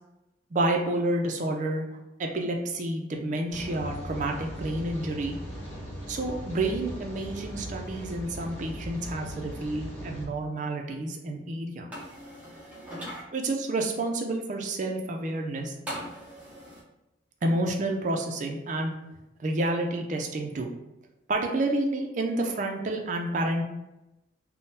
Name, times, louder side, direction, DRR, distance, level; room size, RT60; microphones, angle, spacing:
voice 1, 0.5-1.8 2.2-5.4 6.1-11.9 13.3-15.7 17.4-18.9 19.4-20.7 21.3-23.6, right 2 dB, 45° right, 2 dB, 0.4 m, -29 dB
Rain, 3.5-10.3, equal, 10° left, 1.1 m, -39 dB
sound 1, 11.9-13.2 15.9-16.8, equal, 10° right, 0.7 m, -39 dB
3.6 x 2.1 x 2.7 m, 0.95 s
head